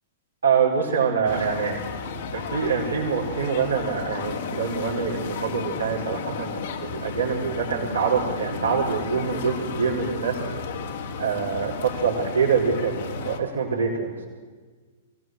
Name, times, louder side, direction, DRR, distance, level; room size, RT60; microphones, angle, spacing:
voice 1, 0.4-1.8 2.3-6.6 6.9-10.4 11.2-14.2, right 6 dB, 80° right, -6 dB, 4.9 m, -25 dB
sound 1, 1.2-13.4, left 4 dB, 60° left, 2.9 m, -33 dB
23.5 x 18.0 x 7.9 m, 1.4 s
figure-of-eight pair, 110°, 0 cm